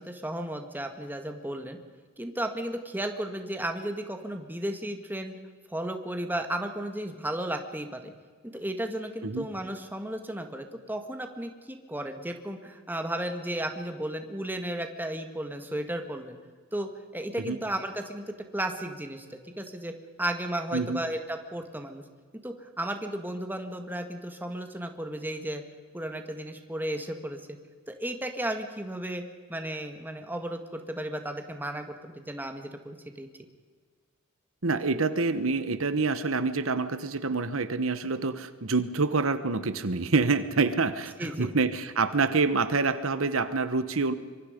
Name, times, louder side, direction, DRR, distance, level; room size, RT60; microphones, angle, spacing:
voice 1, 0.0-1.8 2.2-5.4 5.7-8.1 8.4-16.4 16.7-18.2 18.5-22.0 22.4-25.6 25.9-27.6 27.9-29.2 29.5-33.3 41.2-41.5, right 1 dB, 10° right, 5 dB, 1.9 m, -34 dB
voice 2, 34.6-44.1, right 4 dB, 70° right, 12 dB, 1.2 m, -27 dB
25.0 x 24.0 x 5.2 m, 1.5 s
head